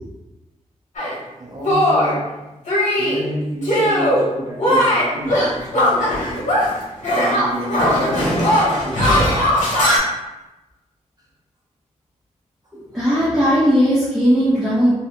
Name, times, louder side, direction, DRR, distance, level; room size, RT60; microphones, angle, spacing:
Shatter, 0.9-1.1 1.6-2.2 2.7-3.2 3.6-4.2 4.6-6.8 7.0-10.0, equal, 70° left, 1.1 m, -18 dB
voice 1, 1.4-2.3 3.0-6.6 7.1-9.5 12.9-13.0, right 1 dB, 30° right, -5 dB, 0.6 m, -30 dB
voice 2, 12.9-14.9, equal, ahead, -11 dB, 0.9 m, -17 dB
3.2 x 2.3 x 2.8 m, 1.0 s
wide cardioid pair, 100°, 13 cm